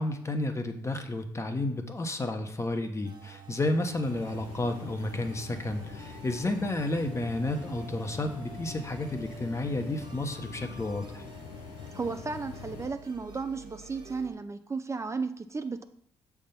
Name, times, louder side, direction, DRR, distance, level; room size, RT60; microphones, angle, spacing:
voice 1, 0.0-11.2, left 2 dB, 25° left, 6 dB, 1.0 m, -31 dB
sound 1, 3.0-14.3, right 4 dB, 45° right, 1.1 m, -49 dB
sound 2, 4.0-12.9, left 7 dB, 75° left, 0.7 m, -44 dB
voice 2, 11.9-15.8, right 4 dB, 25° right, 9 dB, 0.5 m, -34 dB
6.5 x 3.5 x 5.7 m, 0.65 s
supercardioid pair, 55°, 11 cm